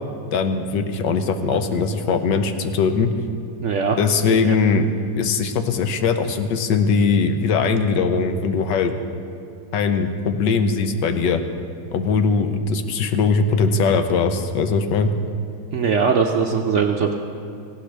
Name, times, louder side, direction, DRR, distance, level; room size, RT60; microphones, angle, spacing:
voice 1, 0.3-3.1 4.0-4.9 5.2-8.9 9.7-11.4 11.9-15.1, left 5 dB, 90° left, 8 dB, 1.5 m, -20 dB
voice 2, 3.6-4.0 4.3-4.5 15.7-17.1, right 6 dB, 65° right, 3 dB, 0.7 m, -20 dB
18.0 x 15.5 x 3.4 m, 2.4 s
omnidirectional pair, 1.9 m